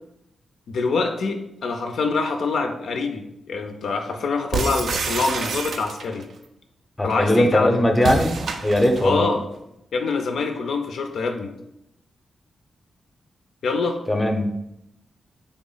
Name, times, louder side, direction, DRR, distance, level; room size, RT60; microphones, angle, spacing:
voice 1, 0.7-6.2 7.0-7.8 9.0-9.4 9.9-11.5 13.6-14.0, left 4 dB, 80° left, 5 dB, 0.3 m, -25 dB
sound 1, 4.5-6.2 8.0-9.1, right 4 dB, 75° right, 0.3 m, -27 dB
voice 2, 7.0-8.3 8.6-9.3 14.1-14.6, left 1 dB, 15° left, 4 dB, 0.5 m, -19 dB
3.3 x 2.0 x 3.7 m, 0.82 s
cardioid pair, 80°, 0 cm